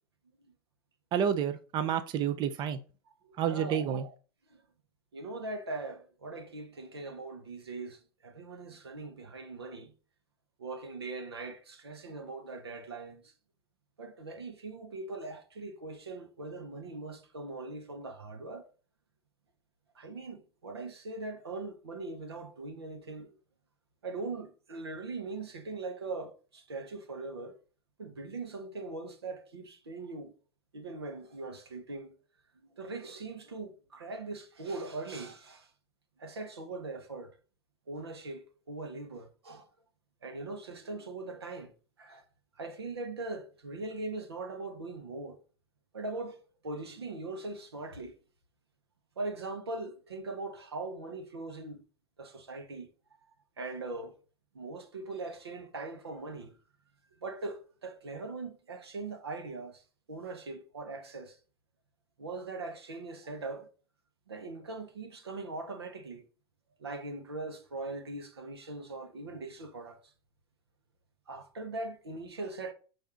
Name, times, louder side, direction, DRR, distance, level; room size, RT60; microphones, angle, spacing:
voice 1, 1.1-2.8 3.4-4.0, right 8 dB, 35° right, 0.5 m, -29 dB
voice 2, 3.2-3.9 4.5-4.6 5.1-9.9 10.6-13.2 14.0-18.6 19.9-23.3 24.0-27.6 28.0-30.3 30.7-32.2 32.7-35.7 36.2-37.3 37.9-39.7 40.2-41.7 42.0-42.2 42.6-45.4 45.9-46.4 46.6-48.2 49.2-51.8 52.2-52.9 53.6-54.2 54.5-56.6 57.2-59.8 60.1-61.4 62.2-63.7 64.3-66.2 66.8-70.0 71.3-72.7, right 3 dB, 90° right, 0.9 m, -41 dB
5.4 x 2.6 x 3.6 m
hypercardioid pair, 95°, 13 cm